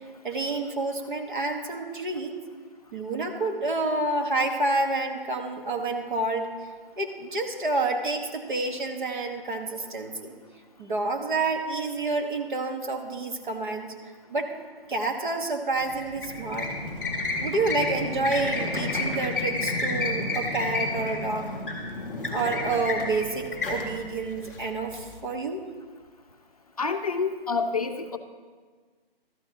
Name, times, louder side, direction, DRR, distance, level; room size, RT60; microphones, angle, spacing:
voice 1, 0.2-2.3 2.9-6.5 7.0-10.3 10.8-13.9 14.3-14.5 14.9-16.7 17.4-21.5 22.3-25.6, right 2 dB, 55° right, 3 dB, 1.4 m, -28 dB
sound 1, 15.7-25.1, left 2 dB, ahead, 1.3 m, -31 dB
voice 2, 26.8-28.2, left 4 dB, 40° left, 5 dB, 0.5 m, -28 dB
16.0 x 13.0 x 2.9 m, 1.5 s
hypercardioid pair, 165°, 30 cm